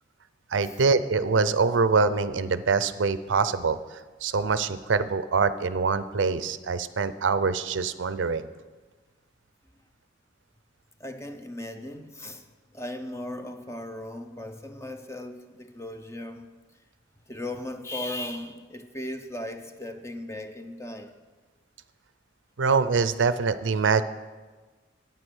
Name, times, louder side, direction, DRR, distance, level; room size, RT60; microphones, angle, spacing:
voice 1, 0.5-3.8 4.2-8.5 22.6-24.0, right 4 dB, 85° right, 13 dB, 0.6 m, -24 dB
voice 2, 11.0-16.6 17.3-21.1, left 1 dB, 15° left, 7 dB, 0.7 m, -37 dB
9.8 x 8.9 x 6.2 m, 1.3 s
head